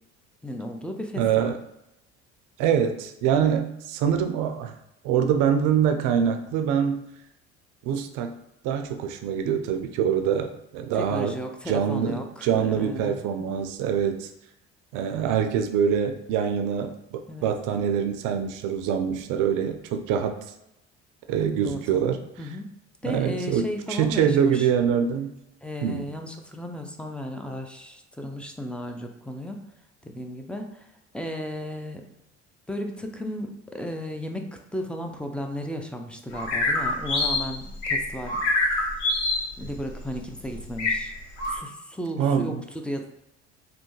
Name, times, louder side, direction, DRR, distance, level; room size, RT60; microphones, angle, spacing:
voice 1, 0.4-1.5 10.9-13.5 17.3-17.5 21.6-22.7 23.0-24.7 25.6-29.6 30.0-30.9 31.1-32.0 32.7-38.4 39.6-41.1 41.5-43.0, equal, 5° left, 4 dB, 0.5 m, -34 dB
voice 2, 1.2-1.6 2.6-4.7 5.0-7.0 7.8-8.3 8.6-11.4 11.7-14.3 14.9-20.4 21.3-22.2 23.1-25.3 25.8-26.1 42.2-42.6, right 8 dB, 65° right, 6 dB, 0.6 m, -24 dB
sound 1, 36.3-41.6, left 2 dB, 75° left, 1.0 m, -26 dB
3.3 x 2.2 x 3.1 m, 0.86 s
hypercardioid pair, 65°, 34 cm